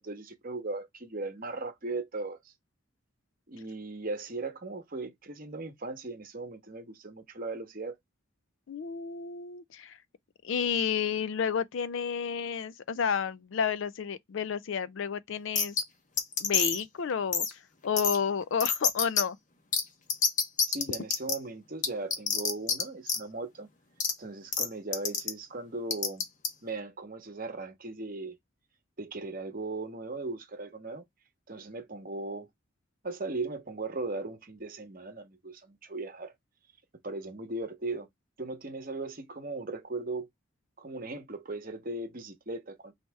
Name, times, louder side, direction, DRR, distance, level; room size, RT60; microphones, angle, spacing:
voice 1, 0.0-2.4 3.5-7.9 20.7-23.7 24.2-26.2 26.6-28.4 29.0-31.0 31.5-32.5 33.0-36.3 37.0-38.1 38.4-40.3 40.8-42.9, right 3 dB, 40° right, 0.9 m, -38 dB
voice 2, 8.7-10.0 10.4-15.8 16.4-17.5 17.8-19.4, left 6 dB, 65° left, 0.4 m, -31 dB
sound 1, 15.6-15.8 16.2-16.8 17.3-17.5 18.0-18.2 18.6-19.2 19.7-19.8 20.1-21.3 21.8-22.8 23.1-23.2 24.0-24.1 24.5-24.7 24.9-25.3 25.9-26.5, left 6 dB, 40° left, 0.8 m, -26 dB
3.2 x 2.8 x 4.5 m
head